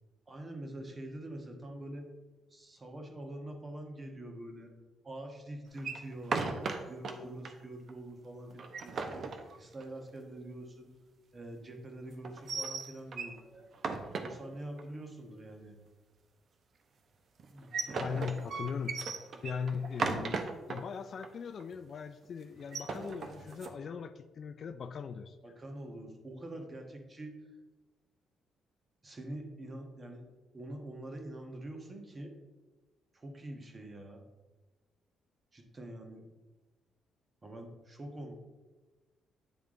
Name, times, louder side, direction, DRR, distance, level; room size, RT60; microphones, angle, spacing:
voice 1, 0.3-2.1 2.5-4.7 5.0-6.4 6.8-10.9 11.3-13.7 14.2-15.7 17.5-18.3 25.4-27.4 29.0-30.3 30.5-32.3 33.1-34.2 35.5-36.3 37.4-38.3, right 1 dB, 30° right, 3 dB, 1.3 m, -45 dB
sound 1, 5.8-7.1 7.5-7.6 7.9-8.0 8.5-10.0 12.2-13.4 13.7-14.8 17.4-20.8 21.2-21.3 21.6-22.0 22.6-23.8, right 4 dB, 55° right, 0.7 m, -36 dB
voice 2, 18.0-19.0 19.4-25.4, left 6 dB, 55° left, 11 dB, 0.3 m, -39 dB
9.1 x 3.5 x 3.7 m, 1.2 s
cardioid pair, 90°, 0 cm